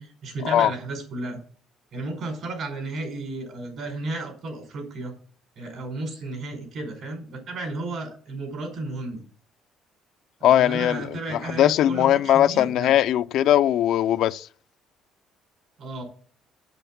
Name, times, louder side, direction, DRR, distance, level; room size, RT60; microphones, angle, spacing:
voice 1, 0.0-1.4 1.9-5.1 5.6-9.2 10.4-12.9 15.8-16.0, right 2 dB, 60° right, 4.7 m, -33 dB
voice 2, 10.4-14.5, left 12 dB, 70° left, 0.5 m, -20 dB
7.9 x 6.8 x 7.1 m
cardioid pair, 125°, 0 cm